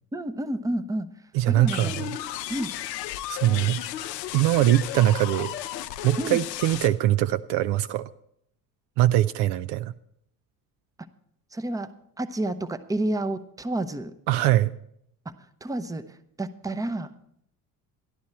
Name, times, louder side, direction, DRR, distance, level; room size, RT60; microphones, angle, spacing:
voice 1, 0.1-1.1 1.5-2.0 2.5-2.7 6.2-6.4 11.5-11.9 12.2-14.1 15.3-15.4 15.6-17.1, right 1 dB, 5° right, 12 dB, 0.7 m, -30 dB
voice 2, 1.3-2.1 3.3-3.8 4.3-5.6 6.0-8.0 9.0-9.9 14.3-14.8, right 14 dB, 55° right, 13 dB, 0.5 m, -22 dB
sound 1, 1.7-6.9, left 13 dB, 80° left, 0.7 m, -34 dB
13.0 x 11.5 x 4.3 m, 0.72 s
hypercardioid pair, 60°, 48 cm